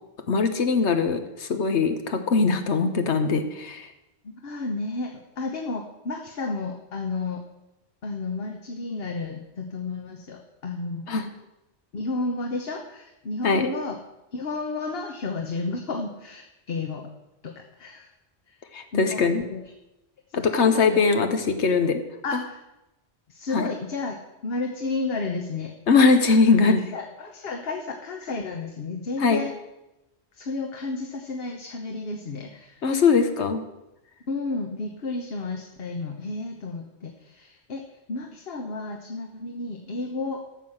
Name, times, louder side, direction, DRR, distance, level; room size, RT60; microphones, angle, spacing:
voice 1, 0.3-3.9 11.1-11.2 13.4-13.7 18.7-19.4 20.3-22.0 22.3-22.4 23.5-23.7 25.9-26.9 29.2-29.4 32.8-33.6, left 4 dB, 85° left, 7 dB, 1.3 m, -21 dB
voice 2, 4.2-7.4 8.0-11.1 11.9-14.0 14.3-17.1 17.4-18.1 18.5-18.6 18.9-19.2 19.5-19.6 20.3-21.2 22.2-22.6 23.3-24.2 24.4-25.7 26.6-29.5 30.3-32.8 34.3-40.4, left 3 dB, 60° left, 3 dB, 1.2 m, -32 dB
14.0 x 5.8 x 7.8 m, 0.95 s
omnidirectional pair, 1.1 m